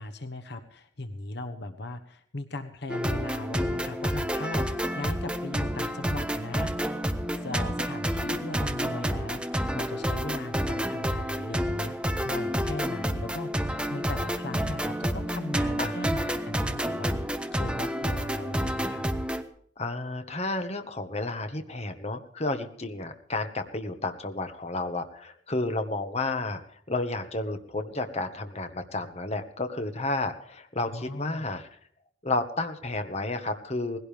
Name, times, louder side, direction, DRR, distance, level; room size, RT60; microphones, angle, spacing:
voice 1, 0.0-6.7 7.4-13.6 13.9-19.0 30.9-31.5, left 2 dB, 60° left, 9 dB, 1.2 m, -38 dB
sound 1, 2.9-19.4, equal, 5° right, 1.1 m, -29 dB
voice 2, 15.8-16.3 19.8-31.7 32.2-34.0, left 2 dB, 35° left, 7 dB, 1.6 m, -31 dB
19.5 x 16.5 x 3.5 m, 0.63 s
head